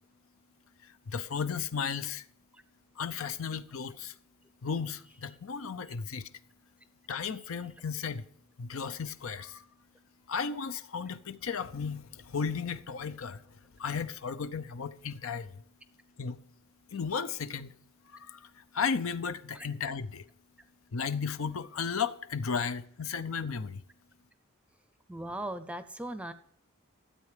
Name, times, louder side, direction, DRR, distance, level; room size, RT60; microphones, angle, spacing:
voice 1, 0.8-2.3 3.0-4.1 4.6-6.3 7.1-8.3 8.6-9.6 10.3-15.6 16.2-16.4 16.9-17.7 18.1-20.2 20.9-23.8, left 6 dB, 75° left, 0.6 m, -35 dB
voice 2, 25.1-26.3, right 1 dB, 5° right, 0.6 m, -39 dB
13.0 x 8.2 x 5.0 m
head